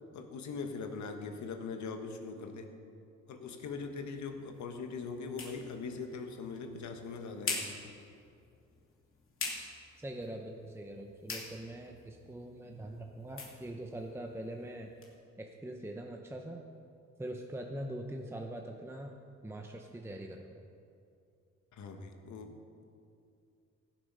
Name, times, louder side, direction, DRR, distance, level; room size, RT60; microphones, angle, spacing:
voice 1, 0.1-2.7 3.3-7.9 21.7-22.5, left 4 dB, 70° left, 5 dB, 1.4 m, -41 dB
sound 1, 3.6-15.1, left 3 dB, 45° left, 2.6 m, -45 dB
voice 2, 10.0-14.9 15.4-16.6 17.2-19.1 19.4-20.6, right 1 dB, 10° right, 2 dB, 0.8 m, -43 dB
16.0 x 7.8 x 5.4 m, 2.5 s
cardioid pair, 90°, 30 cm